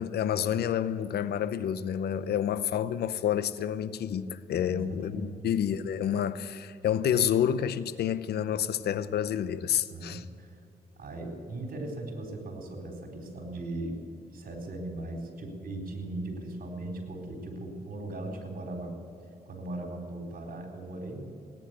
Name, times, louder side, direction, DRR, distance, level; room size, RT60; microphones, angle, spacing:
voice 1, 0.0-10.2, left 9 dB, 85° left, 0.7 m, -29 dB
voice 2, 4.6-5.5 9.9-10.6 11.0-14.0 14.3-19.0 19.5-21.3, right 2 dB, 65° right, 4.1 m, -38 dB
17.5 x 10.0 x 8.1 m
cardioid pair, 65°, 16 cm